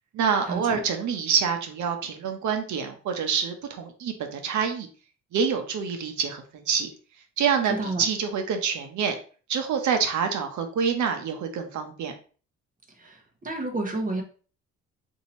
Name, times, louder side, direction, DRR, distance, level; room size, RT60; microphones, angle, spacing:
voice 1, 0.1-4.9 5.3-6.9 7.4-9.2 9.5-12.1, right 6 dB, 70° right, 6 dB, 0.8 m, -26 dB
voice 2, 13.0-14.2, right 2 dB, 25° right, 2 dB, 1.1 m, -30 dB
2.8 x 2.7 x 4.2 m, 0.39 s
cardioid pair, 90°, 30 cm